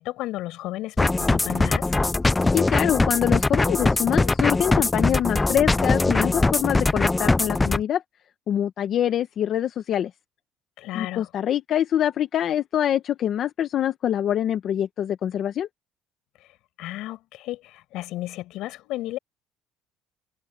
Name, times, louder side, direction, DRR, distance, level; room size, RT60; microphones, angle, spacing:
voice 1, 0.0-1.9 10.8-11.3 16.4-16.5 16.8-19.2, left 16 dB, 75° left, 6.1 m, -33 dB
sound 1, 1.0-7.8, left 2 dB, 15° left, 0.5 m, -21 dB
voice 2, 2.5-8.0 8.5-10.1 10.9-15.7, left 10 dB, 50° left, 1.1 m, -25 dB
cardioid pair, 125°, 0 cm